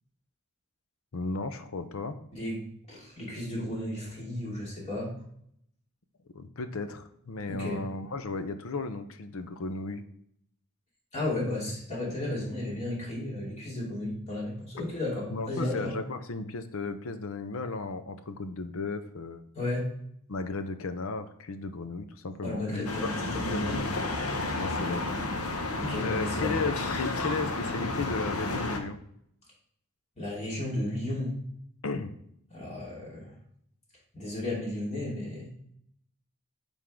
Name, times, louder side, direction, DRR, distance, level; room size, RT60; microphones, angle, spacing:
voice 1, 1.1-2.2 6.3-10.0 14.8-14.9 15.3-19.4 20.3-23.9 24.6-25.0 26.0-29.0 31.8-32.1, left 3 dB, 70° left, 9 dB, 0.7 m, -35 dB
voice 2, 2.9-5.1 7.5-7.8 11.1-15.9 19.5-19.9 22.4-23.7 25.7-26.7 30.2-31.3 32.5-33.3 34.1-35.5, left 1 dB, 30° left, -5 dB, 2.8 m, -34 dB
sound 1, 22.8-28.8, left 2 dB, 90° left, 1.0 m, -32 dB
9.4 x 3.6 x 3.7 m, 0.69 s
head